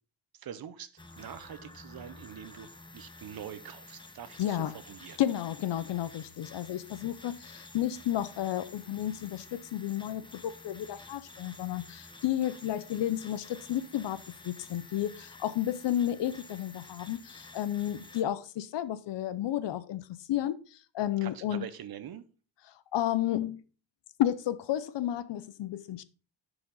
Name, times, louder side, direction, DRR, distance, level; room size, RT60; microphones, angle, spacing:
voice 1, 0.3-2.7 2.9-5.2 21.2-22.2, right 9 dB, 50° right, 0.8 m, -44 dB
sound 1, 1.0-18.2, left 2 dB, 10° left, 0.8 m, -51 dB
voice 2, 4.4-4.7 5.2-14.2 14.4-21.6 22.9-23.6 24.2-26.0, left 12 dB, 65° left, 0.7 m, -32 dB
11.0 x 5.0 x 3.8 m
cardioid pair, 145°, 47 cm